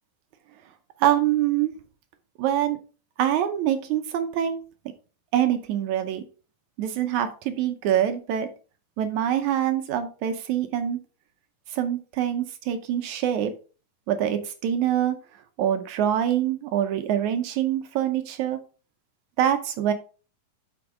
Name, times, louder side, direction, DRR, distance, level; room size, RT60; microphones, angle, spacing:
voice 1, 1.0-1.7 2.4-2.8 3.2-4.6 5.3-6.2 6.8-8.5 9.0-11.0 11.7-13.5 14.1-15.2 15.6-18.6 19.4-19.9, right 10 dB, 75° right, 7 dB, 1.8 m, -25 dB
8.4 x 6.1 x 3.7 m, 0.36 s
omnidirectional pair, 4.2 m